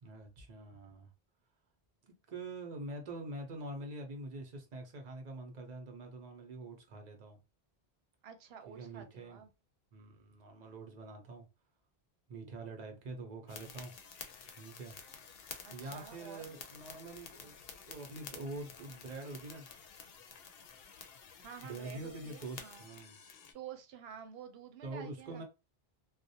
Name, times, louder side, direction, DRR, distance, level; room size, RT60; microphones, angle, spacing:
voice 1, 0.0-1.1 2.0-7.4 8.7-9.4 9.9-11.5 12.3-13.9 14.6-14.9 15.7-17.5 17.9-19.7 21.6-23.2 24.8-25.4, right 2 dB, 45° right, 0.7 m, -45 dB
voice 2, 8.2-9.5 15.6-16.4 21.4-22.9 23.5-25.4, right 8 dB, 80° right, 0.8 m, -50 dB
sound 1, 13.5-23.5, left 6 dB, 70° left, 0.8 m, -51 dB
2.4 x 2.1 x 2.7 m
omnidirectional pair, 1.1 m